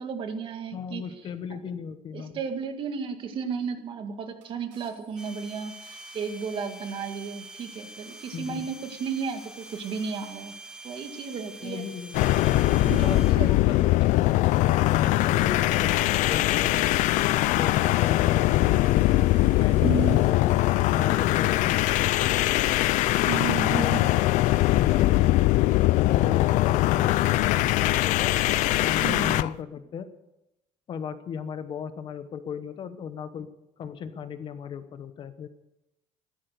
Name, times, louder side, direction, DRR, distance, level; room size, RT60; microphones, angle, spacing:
voice 1, 0.0-1.1 2.1-10.5 10.8-11.8 12.8-13.5 19.8-20.3 23.3-24.1 29.0-29.4, right 6 dB, 40° right, 6 dB, 2.0 m, -33 dB
voice 2, 0.7-2.4 8.3-8.7 11.6-12.2 13.0-13.9 14.9-16.9 17.5-19.1 19.5-20.6 20.9-22.5 23.3-23.9 24.6-25.5 26.0-28.3 28.8-30.1 30.9-33.5 33.8-35.5, left 7 dB, 40° left, 11 dB, 1.0 m, -36 dB
sound 1, 3.5-3.6 4.4-6.3 7.4-7.5 8.0-8.4 8.7-8.8 9.1-10.3 11.9-12.0 12.3-12.6 14.4-14.8 15.0-15.1 16.5-17.2 17.7-20.7, right 8 dB, 75° right, 4.1 m, -56 dB
sound 2, 5.2-13.3, right 1 dB, 5° right, 1.2 m, -45 dB
sound 3, 12.1-29.5, left 17 dB, 75° left, 0.5 m, -22 dB
15.5 x 13.0 x 6.7 m, 0.89 s
cardioid pair, 170°, 13 cm